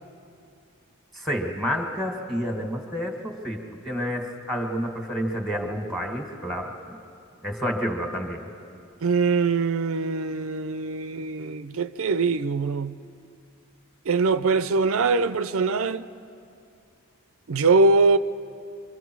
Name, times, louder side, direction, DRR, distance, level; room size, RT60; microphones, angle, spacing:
voice 1, 1.1-7.0 7.4-8.5, equal, ahead, 1.8 m, -29 dB
voice 2, 9.0-13.0 14.1-16.1 17.5-18.2, right 4 dB, 70° right, 0.5 m, -22 dB
26.5 x 24.5 x 4.7 m
head